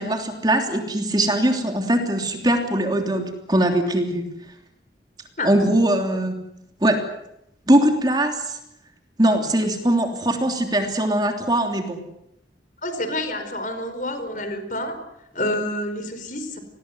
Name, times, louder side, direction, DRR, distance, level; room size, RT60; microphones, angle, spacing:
voice 1, 0.0-4.3 5.4-6.4 6.8-7.0 7.7-8.6 9.2-12.0, right 1 dB, 25° right, 4 dB, 3.2 m, -21 dB
voice 2, 12.8-15.0 15.3-16.6, left 1 dB, 45° left, 9 dB, 4.8 m, -28 dB
29.0 x 20.5 x 8.0 m, 0.82 s
head